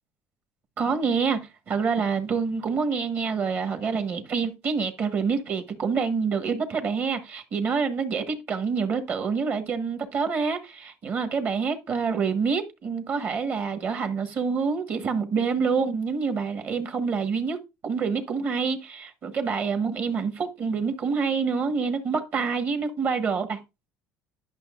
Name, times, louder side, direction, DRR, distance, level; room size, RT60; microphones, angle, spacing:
voice 1, 0.8-17.6 17.8-23.6, right 5 dB, 40° right, 1.3 m, -27 dB
11.0 x 6.0 x 2.5 m
cardioid pair, 135°, 5 cm